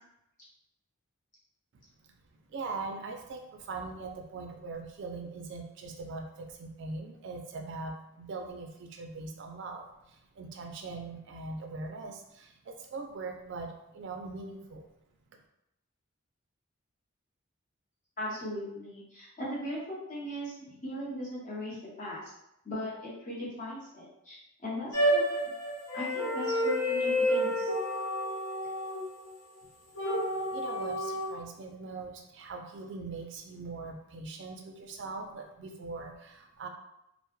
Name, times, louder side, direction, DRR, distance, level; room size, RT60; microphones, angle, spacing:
voice 1, 2.5-14.9 30.5-36.7, right 3 dB, 60° right, 2 dB, 0.3 m, -41 dB
voice 2, 18.2-22.3 22.6-25.2 25.9-27.7, equal, 35° left, -7 dB, 0.9 m, -38 dB
sound 1, 24.9-29.3 30.0-31.3, equal, 90° left, 0.8 m, -29 dB
2.2 x 2.0 x 3.0 m, 0.82 s
head